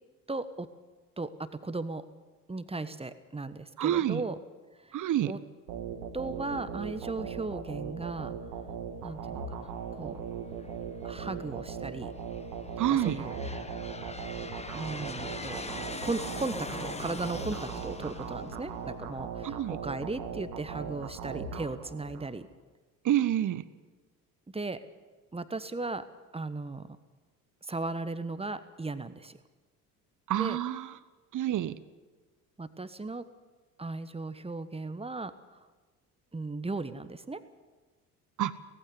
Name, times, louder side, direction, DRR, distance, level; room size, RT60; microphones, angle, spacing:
voice 1, 0.3-0.7 1.2-2.0 2.5-4.4 5.2-5.4 6.1-8.3 9.0-9.4 10.0-10.2 11.0-12.1 12.9-13.4 14.7-22.5 24.5-24.8 25.3-26.0 26.3-27.0 27.6-29.4 30.4-30.6 32.6-33.2 33.8-35.3 36.3-37.4, right 3 dB, 15° right, 12 dB, 1.3 m, -36 dB
voice 2, 3.8-4.2 4.9-5.3 12.8-13.2 19.4-19.8 23.0-23.6 30.3-30.9 31.3-31.8 38.4-38.5, right 12 dB, 40° right, 16 dB, 1.1 m, -28 dB
sound 1, 5.7-22.3, right 6 dB, 65° right, 2.3 m, -39 dB
Aircraft, 10.6-11.2 11.9-19.4, left 3 dB, 15° left, 1.3 m, -42 dB
17.5 x 15.5 x 9.5 m, 1.3 s
figure-of-eight pair, 55°, 45 cm